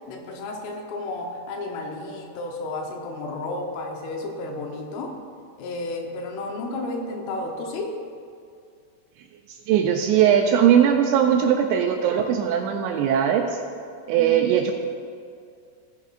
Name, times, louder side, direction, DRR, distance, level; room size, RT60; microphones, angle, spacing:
voice 1, 0.1-5.2 5.6-8.0 14.1-14.4, left 2 dB, 85° left, 2 dB, 3.6 m, -32 dB
voice 2, 9.7-13.6 14.1-14.7, right 9 dB, 85° right, 3 dB, 2.6 m, -19 dB
17.0 x 9.2 x 2.5 m, 2.3 s
omnidirectional pair, 5.6 m